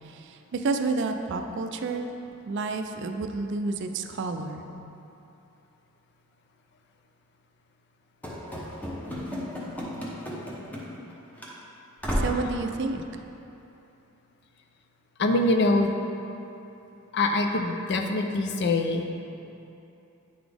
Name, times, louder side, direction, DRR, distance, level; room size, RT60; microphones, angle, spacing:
voice 1, 0.0-2.1 2.4-4.6 12.2-13.0, right 3 dB, 55° right, 6 dB, 0.4 m, -30 dB
Run / Slam, 8.2-11.1 11.4-11.5 12.0-12.5, equal, 5° left, 0.7 m, -32 dB
voice 2, 15.2-15.9 17.1-19.1, left 2 dB, 50° left, 5 dB, 0.4 m, -24 dB
9.1 x 4.0 x 3.4 m, 2.9 s
head